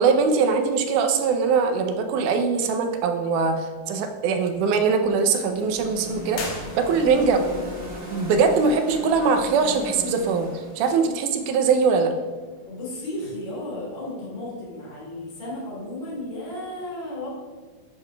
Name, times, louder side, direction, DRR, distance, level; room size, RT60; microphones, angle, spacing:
voice 1, 0.0-7.4 8.1-12.1, right 5 dB, 85° right, 6 dB, 2.2 m, -22 dB
sound 1, 4.4-12.4, left 1 dB, 40° right, 0.8 m, -39 dB
sound 2, 6.3-7.4, left 3 dB, 85° left, 2.6 m, -35 dB
voice 2, 12.7-17.3, left 1 dB, 40° left, -6 dB, 2.5 m, -34 dB
10.0 x 4.9 x 2.2 m, 1.4 s
omnidirectional pair, 3.6 m